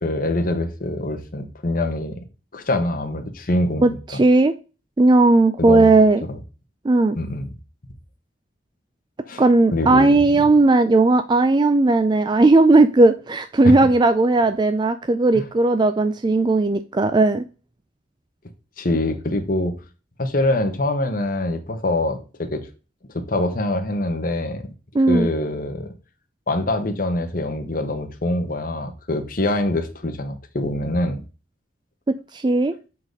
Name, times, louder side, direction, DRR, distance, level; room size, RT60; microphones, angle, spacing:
voice 1, 0.0-2.2 2.5-4.2 5.6-5.9 6.3-6.4 7.1-7.5 9.3-9.4 9.7-10.4 13.6-13.9 15.3-15.5 18.8-19.7 20.2-22.7 23.1-24.6 25.1-25.9 26.5-31.2, left 1 dB, 50° left, 1.3 m, -24 dB
voice 2, 3.8-4.5 5.0-6.2 6.8-7.2 9.4-17.4 24.9-25.3 32.1-32.7, right 2 dB, 25° right, 0.4 m, -16 dB
7.4 x 4.1 x 4.7 m
head